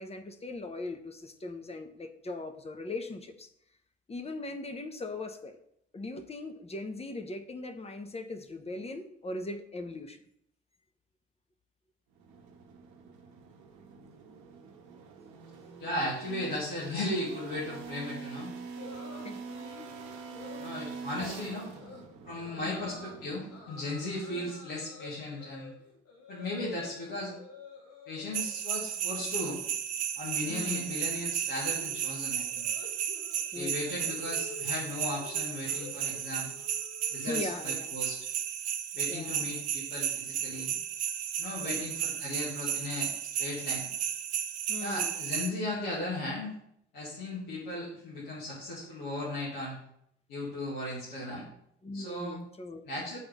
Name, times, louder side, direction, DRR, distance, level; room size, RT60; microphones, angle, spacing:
voice 1, 0.0-3.5 4.1-5.6 5.9-10.2 19.2-19.4 22.6-22.9 24.3-24.5 30.5-30.9 33.5-34.1 37.2-38.0 39.1-39.5 41.6-41.8 44.7-45.2 51.8-52.8, left 2 dB, 20° left, 7 dB, 0.7 m, -39 dB
sound 1, 12.1-24.0, right 5 dB, 60° right, 0.8 m, -45 dB
voice 2, 15.8-18.5 20.6-21.7 22.2-25.7 26.3-27.3 28.1-29.6 30.2-32.7 33.5-36.5 37.1-38.2 38.9-40.8 41.4-43.9 44.8-46.5 46.9-49.8 50.3-51.5 51.9-52.4 52.8-53.2, left 1 dB, 65° left, -8 dB, 1.8 m, -36 dB
sound 2, 18.8-19.9 20.3-20.7 21.1-21.4 21.7-22.0 22.4-23.2 23.5-27.0 27.3-28.5 28.9-29.3 29.5-37.7, left 4 dB, 50° left, 1.3 m, -50 dB
sound 3, 28.3-45.5, right 9 dB, 80° right, 0.5 m, -34 dB
9.2 x 3.5 x 3.5 m, 0.73 s
figure-of-eight pair, 45°, 33 cm